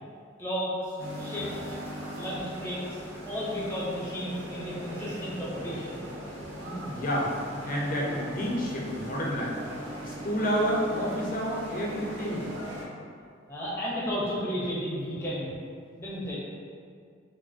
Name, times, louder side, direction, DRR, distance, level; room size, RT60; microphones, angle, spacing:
voice 1, 0.4-1.8 2.1-3.0 3.3-6.0 13.5-15.5 16.0-16.4, equal, 15° left, -8 dB, 0.8 m, -33 dB
sound 1, 1.0-12.8, equal, 80° right, 0.7 m, -39 dB
voice 2, 6.7-7.3 7.6-9.6 10.0-12.5, equal, 45° left, -3 dB, 0.7 m, -29 dB
4.8 x 2.6 x 2.7 m, 2.2 s
head